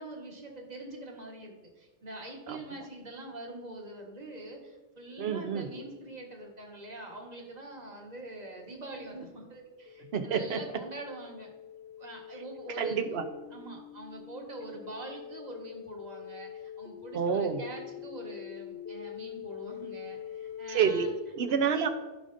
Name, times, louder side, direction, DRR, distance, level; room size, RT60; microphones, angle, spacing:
voice 1, 0.0-11.5 12.0-13.0 13.5-21.1, right 2 dB, 40° right, 0 dB, 1.5 m, -44 dB
voice 2, 5.2-5.7 10.1-10.6 12.8-13.2 17.1-17.6 20.7-21.9, right 6 dB, 75° right, 8 dB, 1.0 m, -28 dB
sound 1, 7.7-20.9, left 9 dB, 80° left, 1.1 m, -46 dB
15.0 x 5.0 x 2.6 m, 1.2 s
omnidirectional pair, 1.1 m